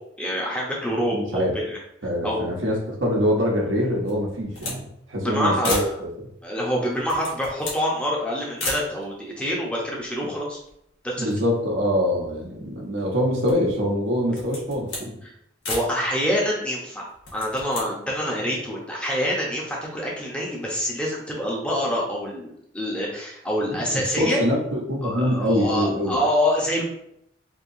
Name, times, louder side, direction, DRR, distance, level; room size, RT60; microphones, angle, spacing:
voice 1, 0.2-1.8 2.2-2.5 5.2-5.9 6.4-10.6 11.0-11.3 15.2-15.3 15.7-17.1 17.3-24.4 25.0-26.8, equal, 5° left, -4 dB, 0.8 m, -26 dB
voice 2, 1.1-1.6 2.0-6.3 11.2-15.2 23.7-26.2, equal, 85° right, -2 dB, 1.0 m, -24 dB
sound 1, 4.0-4.8 5.1-5.2 5.6-6.0 6.9-7.9 8.6-8.9 9.7-9.8 10.0-10.9 11.2-12.5 13.0-13.7 14.2-15.1 15.6-15.9 17.1-17.9, left 2 dB, 85° left, 1.3 m, -33 dB
4.6 x 2.9 x 2.7 m, 0.75 s
head